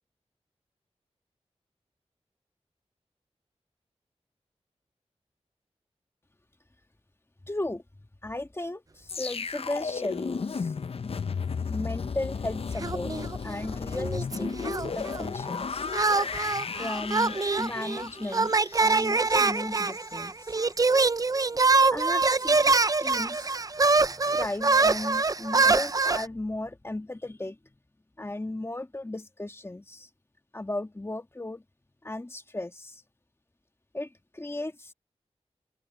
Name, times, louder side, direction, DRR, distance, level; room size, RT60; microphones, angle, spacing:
voice 1, 7.5-7.8 8.2-10.7 11.7-13.1 13.4-15.9 16.8-18.5 18.8-20.5 21.9-22.7 23.0-23.5 23.9-27.6 28.2-30.1 30.5-31.6 32.0-33.0 33.9-34.9, left 2 dB, 20° left, 1.6 m, -35 dB
sound 1, 9.1-20.2 20.5-20.7, left 5 dB, 55° left, 0.6 m, -34 dB
sound 2, 12.8-13.7 13.9-15.3 15.9-26.3, right 3 dB, 30° right, 0.5 m, -24 dB
open air
wide cardioid pair, 75°, 12 cm